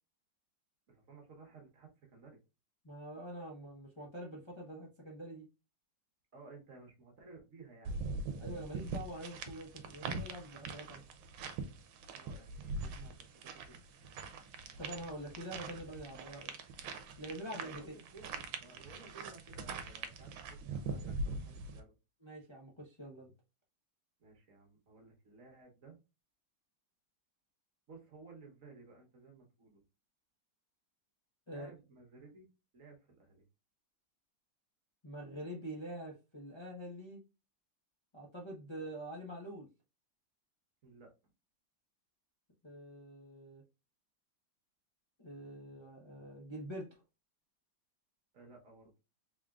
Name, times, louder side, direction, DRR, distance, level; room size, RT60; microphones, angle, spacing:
voice 1, 0.9-2.4 6.3-8.0 12.1-13.1 13.4-13.8 17.5-21.9 24.2-26.0 27.9-29.8 31.5-32.5 32.7-33.4 40.8-41.1 48.3-48.9, right 3 dB, 50° right, 1 dB, 1.3 m, -56 dB
voice 2, 2.8-5.4 8.4-11.0 14.8-16.5 17.2-17.9 22.2-23.3 31.5-31.7 35.0-37.2 38.1-39.7 42.6-43.6 45.2-47.0, right 1 dB, 30° left, -3 dB, 0.5 m, -45 dB
sound 1, 7.8-21.8, right 3 dB, 80° right, 1.4 m, -43 dB
3.7 x 3.7 x 2.3 m, 0.28 s
omnidirectional pair, 2.0 m